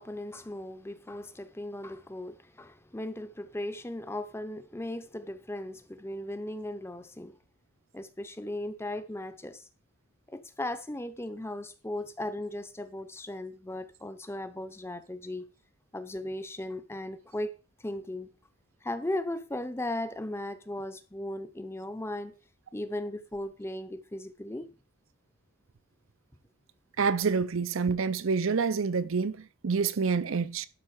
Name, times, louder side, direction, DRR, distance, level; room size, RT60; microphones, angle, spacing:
voice 1, 0.0-7.4 7.9-9.7 10.3-15.5 15.9-17.5 17.8-18.3 18.8-22.3 22.7-24.7, left 1 dB, 10° left, 0.7 m, -37 dB
voice 2, 27.0-30.7, right 5 dB, 65° right, 0.6 m, -27 dB
12.0 x 4.1 x 6.5 m
head